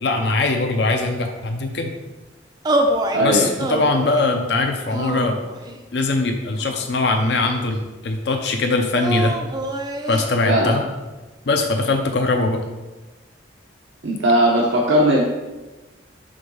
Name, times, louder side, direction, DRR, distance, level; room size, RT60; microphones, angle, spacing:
voice 1, 0.0-1.9 3.2-5.4 5.9-9.3 10.1-10.8 11.5-12.6, left 3 dB, 60° left, 4 dB, 0.6 m, -21 dB
sound 1, 2.6-3.2 3.6-4.3 4.9-5.8 6.6-7.6 8.9-10.3, right 1 dB, 20° right, 0.4 m, -25 dB
voice 2, 3.1-3.5 10.5-10.8 14.0-15.2, right 1 dB, 85° right, -2 dB, 0.8 m, -18 dB
5.1 x 3.9 x 5.4 m, 1.1 s
head